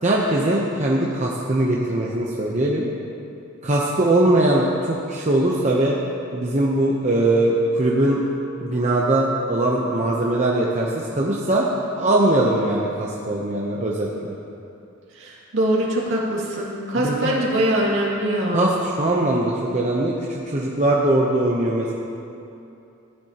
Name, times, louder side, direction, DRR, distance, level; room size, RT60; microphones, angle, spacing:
voice 1, 0.0-2.9 3.6-6.0 6.3-8.2 8.6-11.6 12.0-14.3 16.9-17.4 18.5-21.9, right 1 dB, 35° right, -3 dB, 0.8 m, -21 dB
voice 2, 15.2-18.7, right 1 dB, 65° right, -5 dB, 2.3 m, -23 dB
15.5 x 9.5 x 2.9 m, 2.7 s
head